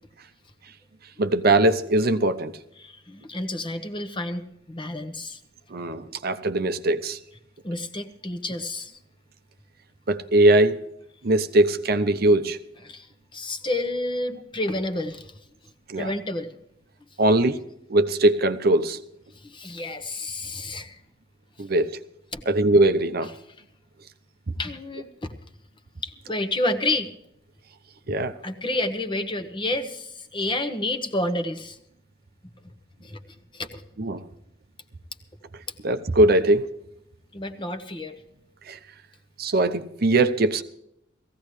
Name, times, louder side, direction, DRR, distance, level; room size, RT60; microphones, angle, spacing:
voice 1, 1.2-2.5 5.7-7.2 10.1-10.8 11.2-12.6 15.9-16.1 17.2-17.6 17.9-19.0 21.6-22.0 22.5-23.3 28.1-28.3 34.0-34.2 35.8-36.8 38.7-38.8 39.4-40.6, right 2 dB, 55° right, 9 dB, 0.8 m, -21 dB
voice 2, 2.8-4.4 4.7-5.4 7.6-9.0 12.8-15.4 16.0-16.5 19.3-21.0 22.3-22.4 24.6-25.3 26.0-27.1 28.4-31.8 32.6-32.7 33.0-33.8 37.3-38.2, left 2 dB, 25° left, 9 dB, 1.1 m, -30 dB
18.5 x 15.5 x 3.2 m, 0.79 s
head